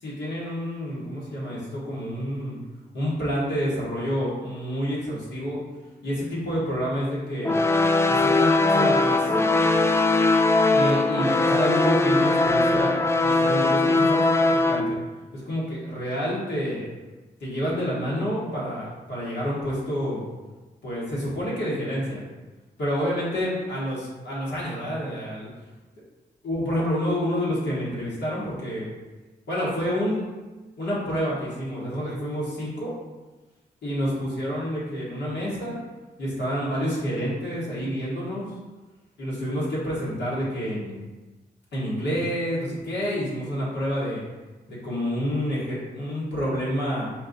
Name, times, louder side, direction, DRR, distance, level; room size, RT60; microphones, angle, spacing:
voice 1, 0.0-2.6 2.9-5.6 6.0-7.6 8.0-9.3 10.7-15.0 15.3-16.9 17.4-20.3 20.8-22.2 22.8-25.5 26.4-28.9 29.5-30.2 30.8-32.9 33.8-35.8 36.2-38.5 39.2-41.0 41.7-44.2 44.7-47.1, equal, 80° left, -7 dB, 1.5 m, -28 dB
sound 1, 7.4-14.8, left 2 dB, 15° left, 0.3 m, -20 dB
4.4 x 2.3 x 4.0 m, 1.2 s
supercardioid pair, 45°, 18 cm